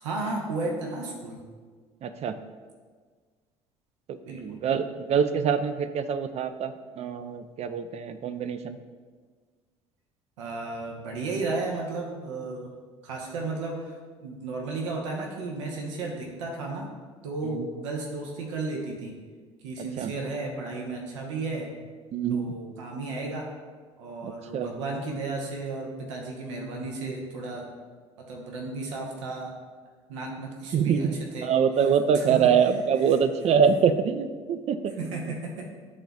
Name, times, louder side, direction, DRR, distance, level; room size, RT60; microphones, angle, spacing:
voice 1, 0.0-1.4 4.2-4.6 10.4-12.7 13.0-16.9 17.2-19.2 19.6-21.7 22.3-23.5 24.0-27.7 28.2-29.5 30.1-31.1 31.3-31.5 32.1-32.4 35.0-35.7, right 3 dB, 75° right, 0 dB, 0.9 m, -34 dB
voice 2, 2.0-2.4 4.1-8.8 17.4-17.7 19.8-20.1 22.1-22.6 24.2-24.7 30.7-31.1 31.4-35.3, right 7 dB, 45° right, 10 dB, 0.5 m, -25 dB
11.0 x 4.0 x 2.3 m, 1.5 s
figure-of-eight pair, 55°, 16 cm